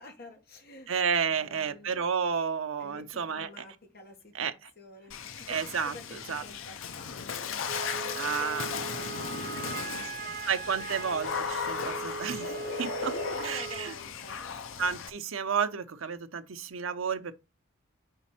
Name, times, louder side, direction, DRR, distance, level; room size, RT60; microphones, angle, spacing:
voice 1, 0.0-0.9 1.3-2.0 2.8-7.6 7.9-10.4 12.8-14.6, left 2 dB, 50° left, 1.5 m, -49 dB
voice 2, 0.9-3.6 4.3-4.5 5.5-6.4 8.2-8.7 10.5-13.1 13.4-13.9 14.8-17.3, right 6 dB, 85° right, 0.7 m, -31 dB
Water / Splash splatter, 5.1-15.1, left 6 dB, 75° left, 0.6 m, -36 dB
Wind instrument woodwind instrument, 7.7-13.9, right 6 dB, 40° right, 0.5 m, -40 dB
5.5 x 4.1 x 4.2 m
head